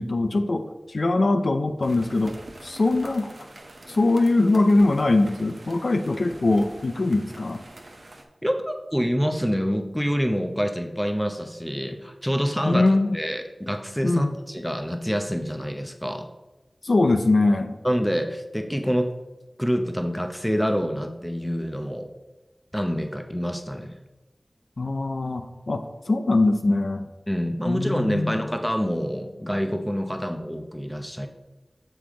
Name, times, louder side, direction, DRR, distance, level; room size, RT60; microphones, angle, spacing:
voice 1, 0.0-3.3 3.9-7.6 12.6-13.2 14.0-14.3 16.8-17.8 24.8-27.1 27.7-28.5, left 2 dB, 70° left, 7 dB, 0.5 m, -22 dB
sound 1, 1.8-8.2, right 2 dB, 65° right, 0.9 m, -45 dB
voice 2, 8.4-16.3 17.8-19.1 19.6-22.1 22.7-24.0 27.3-31.3, equal, 5° left, 5 dB, 0.8 m, -27 dB
6.9 x 5.0 x 3.7 m, 1.1 s
wide cardioid pair, 45°, 0 cm